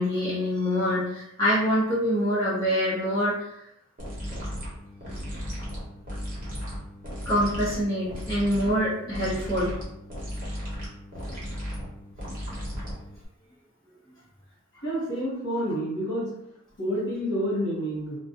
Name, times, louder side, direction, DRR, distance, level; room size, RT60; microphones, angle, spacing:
voice 1, 0.0-3.6 7.2-9.8, equal, 20° left, -10 dB, 0.8 m, -25 dB
sound 1, 4.0-13.3, equal, 40° right, 0.9 m, -35 dB
voice 2, 14.7-16.3 16.8-18.2, equal, 60° left, -6 dB, 1.1 m, -29 dB
2.3 x 2.1 x 2.7 m, 0.78 s
head